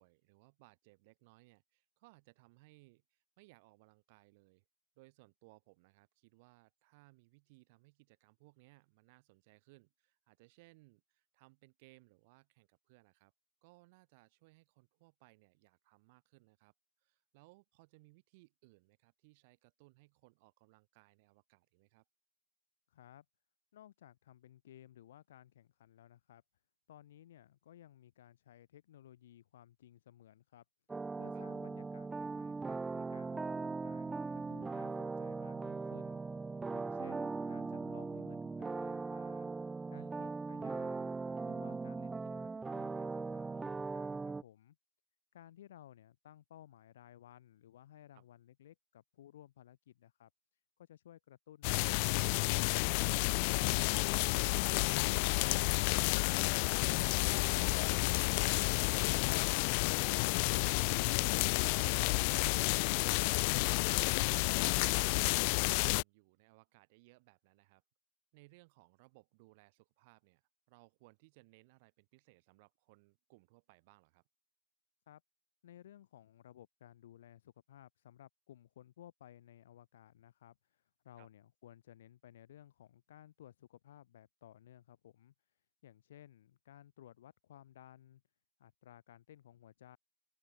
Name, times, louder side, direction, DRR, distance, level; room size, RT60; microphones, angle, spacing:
voice 1, 0.0-4.6 5.0-13.3 13.6-16.7 17.0-22.0 31.3-31.5 39.9-40.2 48.1-48.2 64.0-64.2 64.6-67.8 68.3-74.2 81.2-81.3, right 25 dB, 60° right, 7.0 m, -64 dB
voice 2, 22.9-23.2 23.7-26.4 26.9-36.2 36.7-39.5 39.9-41.1 41.4-44.8 45.3-54.1 75.1-75.2 75.6-88.2 88.6-90.0, left 12 dB, 85° left, 5.7 m, -58 dB
sound 1, 30.9-44.4, right 4 dB, 10° right, 1.8 m, -39 dB
sound 2, 51.6-66.0, left 32 dB, 55° left, 0.5 m, -30 dB
open air
supercardioid pair, 130°, 0 cm